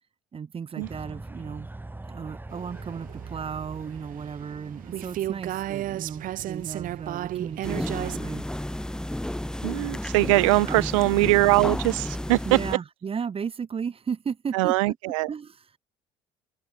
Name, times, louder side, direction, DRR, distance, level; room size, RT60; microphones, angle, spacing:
voice 1, 0.3-1.7 2.1-8.4 10.6-10.9 12.4-15.0 15.3-15.7, right 6 dB, 35° right, 2.0 m, -35 dB
sound 1, 0.8-5.7, right 2 dB, 10° right, 3.4 m, -43 dB
sound 2, 2.5-8.2, right 13 dB, 60° right, 1.2 m, -34 dB
sound 3, 7.6-12.8, left 1 dB, 5° left, 2.2 m, -32 dB
voice 2, 9.6-12.4 14.5-15.3, right 23 dB, 80° right, 0.6 m, -22 dB
open air
hypercardioid pair, 65°, 16 cm